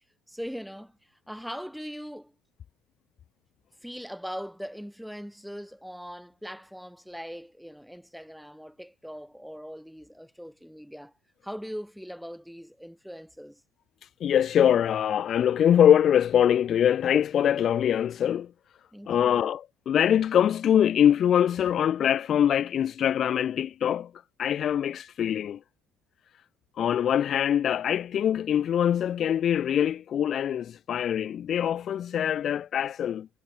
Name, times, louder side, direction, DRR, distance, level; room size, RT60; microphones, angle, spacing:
voice 1, 0.3-2.3 3.8-11.1 11.4-13.6 18.9-19.5, equal, ahead, 5.2 m, -40 dB
voice 2, 14.2-18.5 19.1-24.1 24.4-25.6 26.8-33.3, left 9 dB, 45° left, 0.5 m, -23 dB
hypercardioid pair, 60°, 0 cm